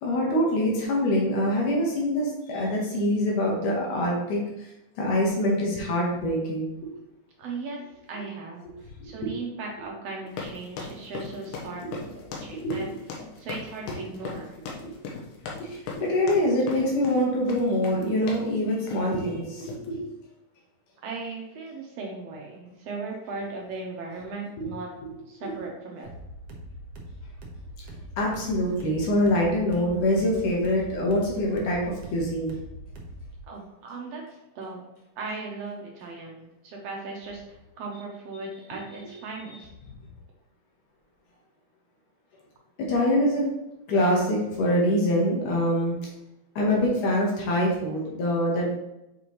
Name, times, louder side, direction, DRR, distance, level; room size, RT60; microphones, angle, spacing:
voice 1, 0.0-4.7 5.0-6.9 9.0-9.3 11.8-11.9 12.6-12.8 14.8-14.9 15.6-20.0 25.4-25.5 28.2-32.6 42.8-43.5 43.9-46.0 46.6-48.7, left 1 dB, 70° left, -2 dB, 2.6 m, -25 dB
voice 2, 7.4-7.8 8.1-8.7 9.0-11.8 12.4-12.9 13.4-14.6 21.0-24.9 25.3-26.1 33.5-34.8 35.2-39.7, right 3 dB, 80° right, -1 dB, 1.4 m, -37 dB
sound 1, 10.3-18.5 18.9-19.2 19.6-19.9, left 4 dB, 85° left, 2.8 m, -39 dB
sound 2, 26.0-33.4, right 1 dB, 60° right, 1.6 m, -42 dB
7.6 x 5.0 x 3.1 m, 0.92 s
omnidirectional pair, 4.0 m